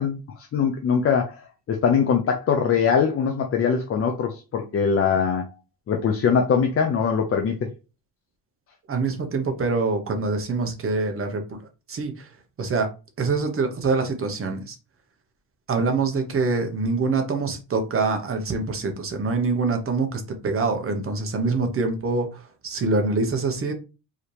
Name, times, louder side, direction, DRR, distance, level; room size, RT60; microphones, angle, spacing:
voice 1, 0.0-5.4 5.9-7.7, left 6 dB, 30° left, 0.4 m, -22 dB
voice 2, 8.9-11.6 11.9-12.3 12.6-12.9 13.2-14.8 15.7-23.7, right 3 dB, 30° right, 0.8 m, -25 dB
4.9 x 2.8 x 3.1 m
cardioid pair, 170°, 44 cm